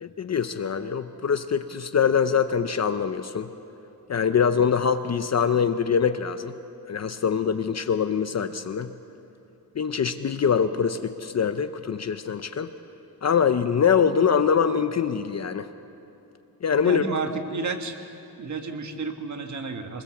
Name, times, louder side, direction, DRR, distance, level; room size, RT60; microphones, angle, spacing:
voice 1, 0.0-3.5 4.1-6.5 6.9-8.9 9.8-12.7 13.2-15.7 16.6-17.1, left 7 dB, 40° left, 10 dB, 0.6 m, -24 dB
voice 2, 16.8-17.9 18.4-20.0, right 4 dB, 45° right, 5 dB, 1.6 m, -31 dB
23.5 x 20.5 x 7.1 m, 2.9 s
wide cardioid pair, 175°, 40 cm